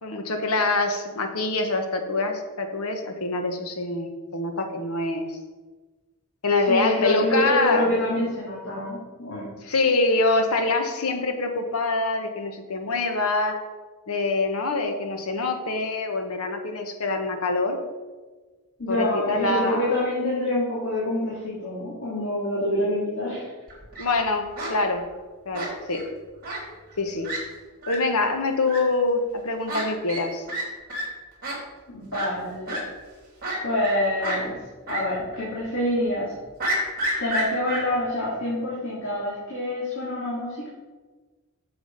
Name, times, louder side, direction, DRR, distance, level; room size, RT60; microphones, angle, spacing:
voice 1, 0.0-5.4 6.4-8.0 9.6-13.6 14.1-17.8 18.9-19.9 24.0-25.1 25.4-26.0 27.0-27.3 27.9-30.5, left 3 dB, 80° left, 5 dB, 1.2 m, -25 dB
voice 2, 6.7-9.5 18.8-23.5 31.9-32.8 33.6-34.6 34.9-36.4 37.2-40.7, left 1 dB, 60° left, -7 dB, 2.6 m, -26 dB
Fowl, 23.7-24.1 24.6-24.7 25.5-26.0 26.4-26.6 26.9-27.0 27.2-27.4 27.8-28.0 28.7-28.8 29.7-29.8 30.1-30.2 30.5-30.6 30.9-31.0 31.4-31.5 32.1-32.3 32.7-32.8 33.4-33.9 34.2-34.4 34.9-35.0 35.3-35.4 36.6-37.8, right 1 dB, 40° right, 3.1 m, -29 dB
7.3 x 7.2 x 5.2 m, 1.3 s
head